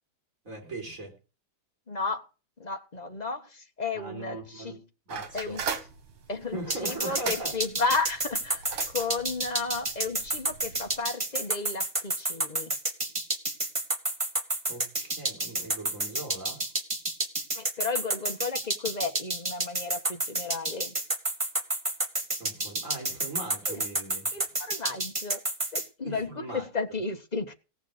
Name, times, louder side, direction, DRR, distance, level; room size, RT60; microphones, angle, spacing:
voice 1, 0.4-1.1 3.9-4.8 5.1-5.6 6.5-7.6 14.7-16.6 22.4-24.3 26.0-26.7, right 2 dB, 40° right, 4.7 m, -39 dB
voice 2, 1.9-2.3 2.6-4.8 5.3-5.6 6.3-12.7 17.5-20.9 23.7-23.8 24.3-25.4 25.7-27.5, left 4 dB, 25° left, 1.2 m, -33 dB
sound 1, 5.1-11.0, right 6 dB, 80° right, 2.4 m, -39 dB
sound 2, 6.7-25.8, right 2 dB, 20° right, 1.3 m, -29 dB
17.0 x 7.0 x 6.5 m
omnidirectional pair, 2.2 m